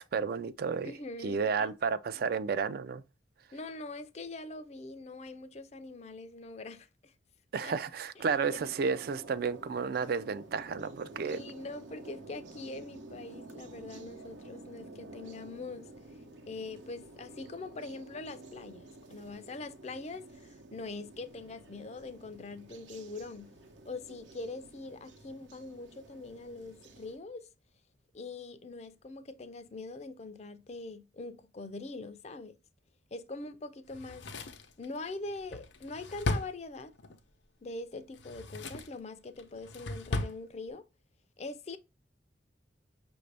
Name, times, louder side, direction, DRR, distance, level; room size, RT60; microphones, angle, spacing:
voice 1, 0.0-0.9 1.2-3.0 7.5-11.4, right 5 dB, 55° right, 0.3 m, -32 dB
voice 2, 0.8-1.8 3.5-7.1 7.6-7.8 11.2-15.9 16.4-23.5 23.8-27.5 28.1-32.6 33.1-34.3 34.8-36.9 37.6-40.8 41.4-41.8, left 3 dB, 35° left, 0.4 m, -43 dB
sound 1, 8.2-27.2, right 2 dB, 85° right, 0.8 m, -51 dB
Drawer open or close, 33.9-37.2 38.1-39.0 39.4-40.4 40.7-40.8, left 2 dB, 75° left, 0.7 m, -37 dB
5.9 x 2.6 x 3.3 m
head